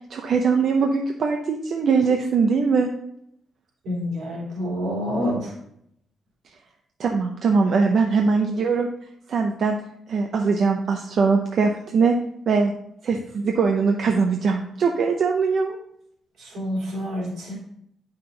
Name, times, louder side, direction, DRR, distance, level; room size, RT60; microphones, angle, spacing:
voice 1, 0.1-2.9 7.0-8.9 9.3-9.8 10.1-12.1 12.5-12.7 13.0-15.8, right 5 dB, 50° right, 3 dB, 0.6 m, -21 dB
voice 2, 3.8-5.5 16.4-17.5, equal, 80° right, -3 dB, 3.2 m, -28 dB
8.6 x 5.7 x 3.9 m, 0.73 s
wide cardioid pair, 165°, 0 cm